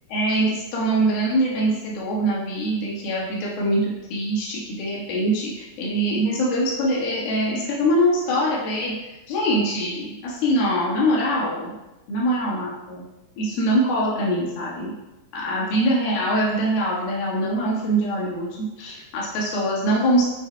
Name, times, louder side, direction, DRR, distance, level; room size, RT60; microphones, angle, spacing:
voice 1, 0.1-8.9 9.3-11.7 12.1-13.1 13.4-15.0 15.3-18.5 18.8-20.2, right 1 dB, 70° left, -5 dB, 3.3 m, -23 dB
12.5 x 4.5 x 2.3 m, 1.0 s
omnidirectional pair, 4.6 m